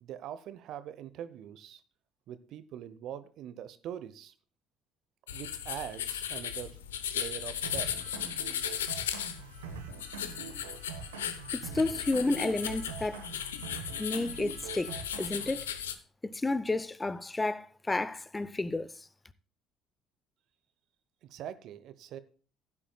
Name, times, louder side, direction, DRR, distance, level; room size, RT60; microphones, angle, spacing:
voice 1, 0.0-1.8 2.3-4.3 5.3-6.8 7.1-8.1 21.2-22.2, right 10 dB, 55° right, 0.9 m, -43 dB
sound 1, 5.3-16.0, left 10 dB, 80° left, 0.7 m, -37 dB
sound 2, 7.6-15.6, right 6 dB, 80° right, 1.3 m, -44 dB
voice 2, 11.5-13.2 14.0-15.7 16.2-19.1, left 2 dB, 15° left, 0.7 m, -31 dB
15.5 x 10.0 x 2.3 m
figure-of-eight pair, 50°, 0 cm